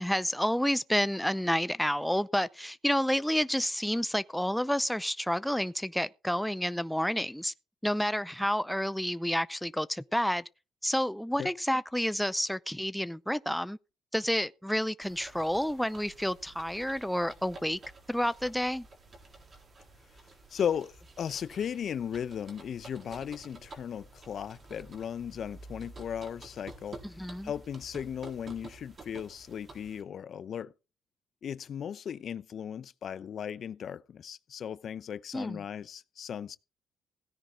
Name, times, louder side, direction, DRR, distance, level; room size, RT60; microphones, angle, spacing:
voice 1, 0.0-7.5 7.8-10.4 10.8-13.8 14.1-17.8 18.1-18.9 27.0-27.5 35.3-35.6, equal, 5° left, 0.5 m, -30 dB
sound 1, 15.0-30.0, right 2 dB, 40° right, 4.1 m, -51 dB
voice 2, 20.5-27.0 27.4-30.7 31.4-36.6, left 8 dB, 60° left, 0.7 m, -36 dB
16.5 x 10.0 x 3.7 m
cardioid pair, 90°, 0 cm